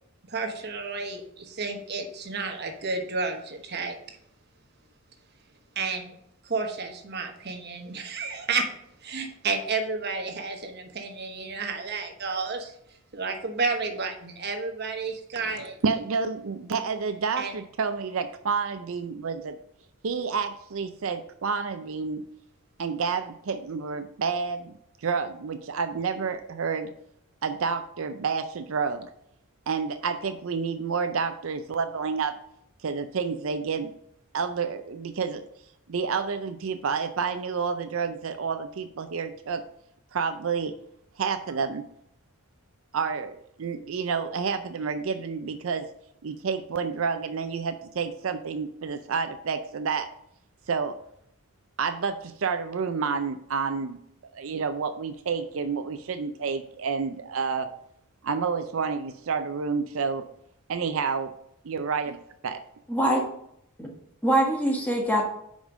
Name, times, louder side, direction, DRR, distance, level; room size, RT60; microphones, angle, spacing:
voice 1, 0.3-4.2 5.7-6.2 6.4-8.7 9.0-12.7 13.1-15.8 17.4-17.5, right 4 dB, 50° right, 4 dB, 1.1 m, -31 dB
voice 2, 15.8-19.6 20.0-22.2 22.8-24.7 25.0-26.9 27.4-29.1 29.7-32.4 32.8-33.9 34.3-35.4 35.9-39.6 40.1-40.7 41.2-41.8 42.9-45.9 46.2-50.1 50.7-50.9 51.8-54.0 54.3-57.7 58.2-60.3 60.7-61.3 61.6-62.2 62.4-62.6, right 5 dB, 65° right, 8 dB, 0.5 m, -29 dB
voice 3, 62.9-63.2 63.8-63.9 64.2-65.2, right 1 dB, 5° left, -1 dB, 1.4 m, -23 dB
5.2 x 5.2 x 6.2 m, 0.73 s
head